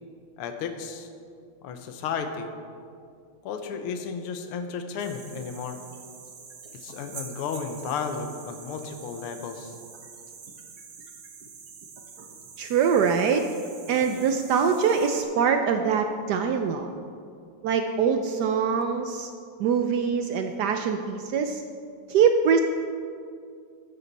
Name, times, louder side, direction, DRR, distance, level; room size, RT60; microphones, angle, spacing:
voice 1, 0.4-1.1 1.6-2.5 3.4-5.8 6.7-9.8, left 6 dB, 80° left, 7 dB, 1.7 m, -33 dB
sound 1, 5.0-15.2, right 5 dB, 55° right, 1.2 m, -45 dB
voice 2, 12.6-13.4 13.9-17.0 17.6-19.3 19.6-21.6 22.1-22.6, right 6 dB, 85° right, 6 dB, 0.9 m, -23 dB
13.0 x 9.8 x 4.1 m, 2.3 s
omnidirectional pair, 2.4 m